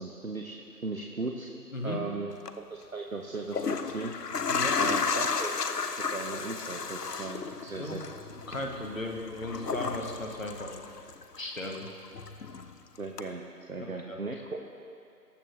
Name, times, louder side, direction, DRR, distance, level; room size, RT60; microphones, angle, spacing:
voice 1, 0.0-1.5 1.8-2.3 2.6-4.1 4.8-5.5 6.0-8.0 13.0-13.4 13.7-14.6, right 3 dB, 55° right, 2 dB, 0.9 m, -37 dB
sound 1, 2.3-2.5 3.3-11.4 11.7-12.7 13.2-13.3, left 5 dB, 70° left, 0.7 m, -33 dB
voice 2, 4.5-4.8 7.7-8.0 8.5-10.8 11.4-11.8 13.8-14.2, left 1 dB, 50° left, 1 dB, 1.6 m, -36 dB
20.0 x 6.8 x 3.1 m, 2.5 s
figure-of-eight pair, 175°, 49 cm